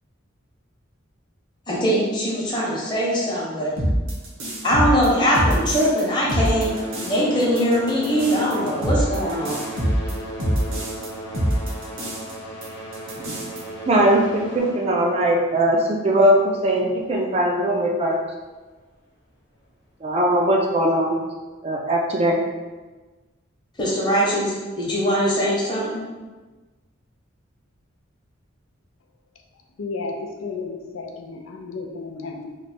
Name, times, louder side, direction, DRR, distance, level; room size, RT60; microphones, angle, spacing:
voice 1, 1.7-3.7 4.6-6.7 7.0-9.6 23.8-26.0, equal, 20° left, -6 dB, 0.9 m, -21 dB
sound 1, 3.8-6.0 6.3-7.1 7.4-11.1 11.3-12.3 12.6-12.7 12.9-13.6, equal, 90° right, 1.0 m, -24 dB
sound 2, 4.5-5.9 6.2-16.5 17.3-17.4 18.1-18.2 18.8-18.9, right 1 dB, 55° left, 0.9 m, -36 dB
voice 2, 13.9-18.2 20.0-21.1 21.6-22.4, right 1 dB, 30° right, 0 dB, 0.4 m, -20 dB
voice 3, 29.8-32.6, left 4 dB, 90° left, 3 dB, 0.4 m, -33 dB
3.1 x 2.2 x 4.2 m, 1.3 s
head